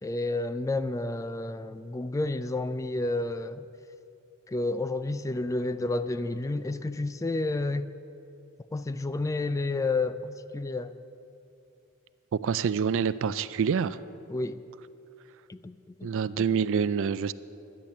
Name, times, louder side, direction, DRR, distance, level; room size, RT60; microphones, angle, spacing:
voice 1, 0.0-3.6 4.5-7.9 8.7-10.9 14.3-14.6 15.5-16.1, left 2 dB, 15° left, 13 dB, 0.3 m, -30 dB
voice 2, 12.3-14.0 16.0-17.3, right 6 dB, 60° right, 15 dB, 0.4 m, -26 dB
12.0 x 10.0 x 7.6 m, 2.7 s
head